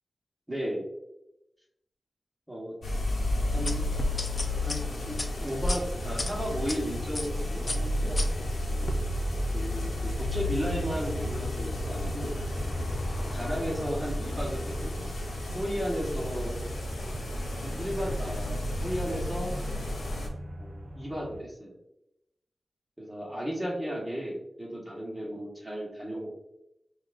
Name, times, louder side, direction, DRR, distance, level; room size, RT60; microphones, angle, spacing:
voice 1, 0.5-0.9 2.5-2.7 3.5-3.9 4.6-8.2 9.5-12.3 13.3-15.1 15.5-16.6 17.6-19.6 20.6-21.7 23.0-26.3, equal, 10° right, -2 dB, 1.1 m, -34 dB
sound 1, 2.8-20.3, left 1 dB, 80° left, 0.8 m, -32 dB
sound 2, 3.7-6.8 7.1-7.4 7.7-8.9, left 1 dB, 40° left, 0.4 m, -33 dB
sound 3, 5.4-21.4, equal, 60° right, 0.5 m, -39 dB
5.6 x 2.4 x 2.4 m, 0.85 s
wide cardioid pair, 110°, 0 cm